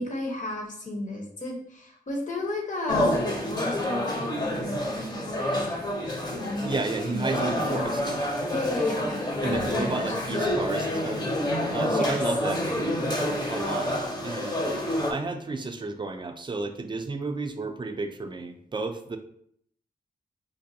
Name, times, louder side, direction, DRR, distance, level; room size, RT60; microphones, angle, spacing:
voice 1, 0.0-5.9 6.3-6.7 7.0-7.3 7.6-8.0 8.5-10.1 11.8-12.2, left 2 dB, 55° left, 0 dB, 1.0 m, -33 dB
sound 1, 2.9-15.1, left 1 dB, 25° left, 0.7 m, -28 dB
voice 2, 6.6-8.0 9.4-11.2 11.7-12.9 13.5-14.7 15.1-19.2, right 3 dB, 30° right, 7 dB, 0.4 m, -32 dB
5.1 x 2.2 x 2.7 m, 0.67 s
wide cardioid pair, 90°, 16 cm